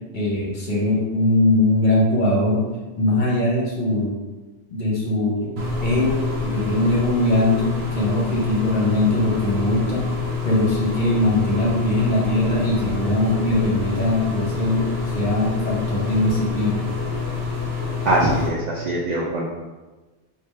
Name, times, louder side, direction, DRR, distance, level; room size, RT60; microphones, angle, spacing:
voice 1, 0.1-2.7 3.0-4.2 4.7-5.5 5.8-10.1 10.4-16.8, left 1 dB, 50° left, -4 dB, 0.7 m, -21 dB
sound 1, 5.6-18.5, left 4 dB, 60° right, 0.8 m, -27 dB
voice 2, 18.1-19.5, right 1 dB, 80° right, -4 dB, 0.3 m, -22 dB
3.1 x 2.2 x 3.3 m, 1.2 s
omnidirectional pair, 1.3 m